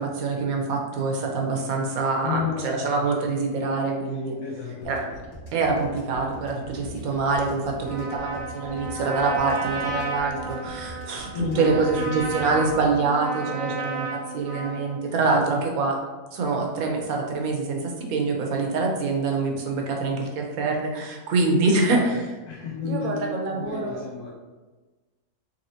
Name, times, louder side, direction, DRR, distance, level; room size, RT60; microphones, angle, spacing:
voice 1, 0.0-4.3 4.9-5.0 5.5-16.0 16.3-22.2 22.8-24.0, right 3 dB, 70° right, 1 dB, 1.1 m, -25 dB
voice 2, 2.2-3.1 4.1-5.0 11.3-12.6 15.2-15.3 21.8-23.2 23.5-24.3, left 6 dB, 75° left, -5 dB, 1.2 m, -33 dB
sound 1, 4.8-12.9, equal, 25° left, 0.5 m, -42 dB
Trumpet, 7.8-15.0, right 2 dB, 40° right, 0.9 m, -33 dB
4.2 x 3.3 x 2.8 m, 1.3 s
omnidirectional pair, 1.6 m